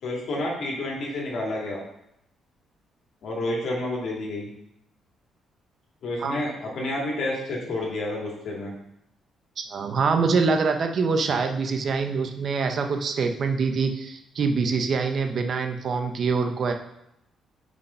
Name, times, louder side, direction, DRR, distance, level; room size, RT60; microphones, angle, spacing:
voice 1, 0.0-1.8 3.2-4.5 6.0-8.8, left 1 dB, 65° left, -2 dB, 2.4 m, -29 dB
voice 2, 9.6-16.7, right 4 dB, 55° right, 5 dB, 0.9 m, -25 dB
6.5 x 5.3 x 5.7 m, 0.79 s
cardioid pair, 90°, 0 cm